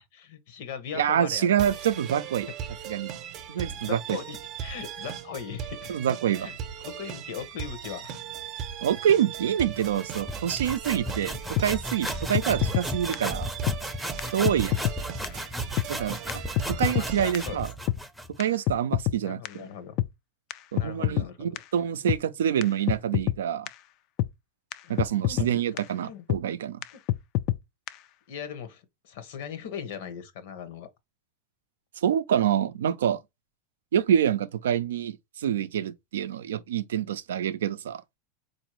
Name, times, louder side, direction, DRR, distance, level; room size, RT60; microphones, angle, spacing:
voice 1, 0.0-1.8 3.5-6.0 6.4-6.5 6.8-8.2 14.6-14.7 16.8-17.6 19.2-20.0 20.7-21.6 25.2-25.5 26.0-26.2 26.9-27.0 28.3-30.9, left 8 dB, 70° left, 0.8 m, -39 dB
voice 2, 0.9-2.5 2.9-3.1 3.5-4.2 5.9-6.5 8.8-13.5 14.3-14.8 15.9-16.4 16.7-17.7 18.4-19.7 20.7-23.7 24.9-26.8 32.0-33.2 33.9-38.0, right 9 dB, 90° right, 0.4 m, -26 dB
sound 1, 1.6-17.6, right 8 dB, 45° right, 0.7 m, -38 dB
sound 2, 9.7-18.4, equal, ahead, 0.5 m, -35 dB
sound 3, 11.6-11.7 12.1-12.2 12.3-12.9 13.1-13.2 13.7-13.8 14.2-14.3 14.4-15.0 15.2-15.3 15.8-15.9 16.3-16.4 16.6-17.1 17.3-17.4 17.9-18.0 18.4-19.2 19.4-19.5 20.0-20.1 20.5-20.6 20.8-21.3 21.6-21.7 22.1-22.2 22.6-22.7 22.9-23.4 23.7-23.8 24.2-24.3 24.7-24.8 25.0-25.5 25.8-25.9 26.3-26.4 26.8-26.9 27.1-27.6 27.9-28.0, left 16 dB, 50° left, 0.3 m, -26 dB
4.0 x 2.6 x 3.0 m
supercardioid pair, 125°, 0 cm